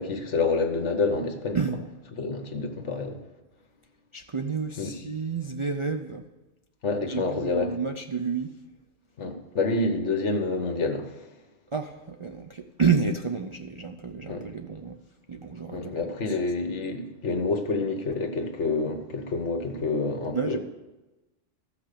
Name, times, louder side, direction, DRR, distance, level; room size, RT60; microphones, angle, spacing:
voice 1, 0.0-1.6 2.2-3.2 4.8-4.9 6.8-7.7 9.2-11.1 14.3-14.4 15.7-20.6, left 3 dB, 65° left, 6 dB, 1.5 m, -28 dB
voice 2, 1.5-1.9 4.1-6.3 7.0-8.6 11.7-15.0 15.3-15.9 16.3-16.4 20.3-20.6, right 5 dB, 50° right, 6 dB, 0.3 m, -29 dB
14.5 x 5.8 x 6.7 m, 1.1 s
omnidirectional pair, 1.3 m